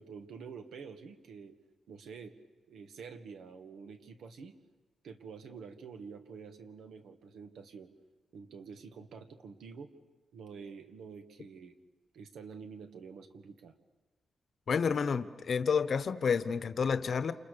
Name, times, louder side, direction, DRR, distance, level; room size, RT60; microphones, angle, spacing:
voice 1, 0.0-1.6 1.9-2.3 2.7-4.5 5.0-7.9 8.3-9.9 10.3-11.7 12.1-13.7, right 5 dB, 85° right, 7 dB, 1.9 m, -48 dB
voice 2, 14.7-17.3, left 6 dB, 45° left, 12 dB, 1.0 m, -30 dB
29.0 x 28.0 x 6.9 m, 1.2 s
wide cardioid pair, 165°, 0 cm